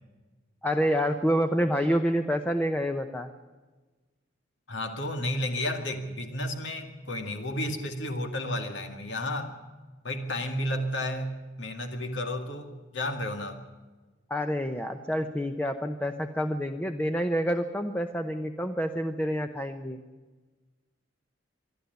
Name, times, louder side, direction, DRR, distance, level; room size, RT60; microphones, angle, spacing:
voice 1, 0.6-3.3 14.3-20.0, equal, 10° left, 7 dB, 0.8 m, -28 dB
voice 2, 4.7-9.5 10.0-13.6, left 1 dB, 70° left, 5 dB, 2.2 m, -32 dB
25.5 x 11.5 x 9.5 m, 1.3 s
head